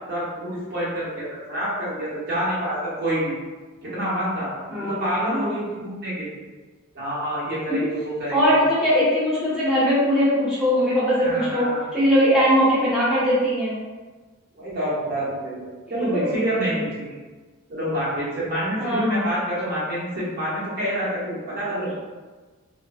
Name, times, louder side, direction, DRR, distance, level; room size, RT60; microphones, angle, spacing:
voice 1, 0.1-3.3 3.9-4.5 4.8-6.4 6.9-8.4 11.2-11.8 14.6-17.0 17.7-21.9, right 1 dB, 45° right, -9 dB, 1.0 m, -27 dB
voice 2, 4.7-5.5 7.8-7.9 8.3-11.7 11.9-13.8 15.9-16.8 18.8-19.3, equal, 5° right, -10 dB, 0.7 m, -21 dB
2.6 x 2.2 x 2.4 m, 1.3 s
head